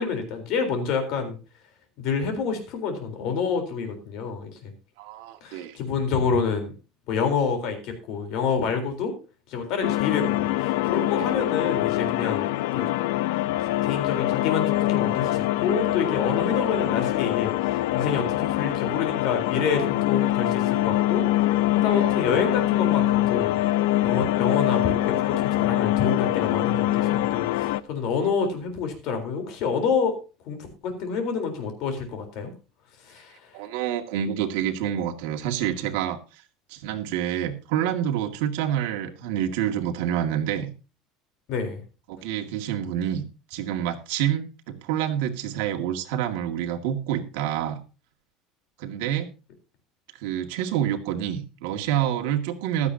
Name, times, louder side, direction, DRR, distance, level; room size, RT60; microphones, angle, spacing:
voice 1, 0.0-1.4 2.0-4.7 5.4-6.7 7.1-9.2 9.5-12.8 13.8-21.3 21.7-23.6 24.0-30.2 30.5-32.5 33.1-33.4 41.5-41.8, left 5 dB, 50° left, 6 dB, 3.9 m, -28 dB
voice 2, 5.0-5.8 21.9-22.1 33.5-36.4 36.7-40.7 42.1-43.2 43.5-47.8 48.8-49.3 50.2-52.9, right 10 dB, 75° right, 5 dB, 2.1 m, -27 dB
sound 1, 9.8-27.8, left 16 dB, 85° left, 0.6 m, -24 dB
15.5 x 12.5 x 2.8 m, 0.32 s
cardioid pair, 175°, 0 cm